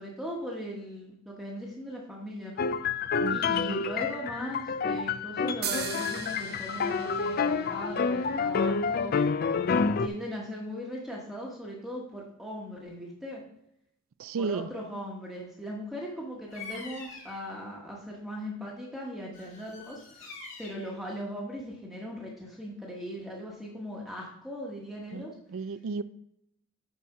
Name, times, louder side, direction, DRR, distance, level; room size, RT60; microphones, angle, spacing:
voice 1, 0.0-2.7 3.3-9.2 10.0-13.4 14.4-20.3 20.6-25.3, equal, ahead, 1.2 m, -39 dB
sound 1, 2.6-10.1, left 5 dB, 40° left, 0.3 m, -28 dB
voice 2, 3.2-3.9 14.2-14.7 25.1-26.0, right 4 dB, 65° right, 0.4 m, -34 dB
sound 2, 5.6-9.2, right 7 dB, 45° right, 0.8 m, -39 dB
Bird vocalization bird call bird song, 16.5-17.5 19.3-20.9, left 4 dB, 60° left, 2.0 m, -45 dB
9.5 x 4.3 x 4.8 m
head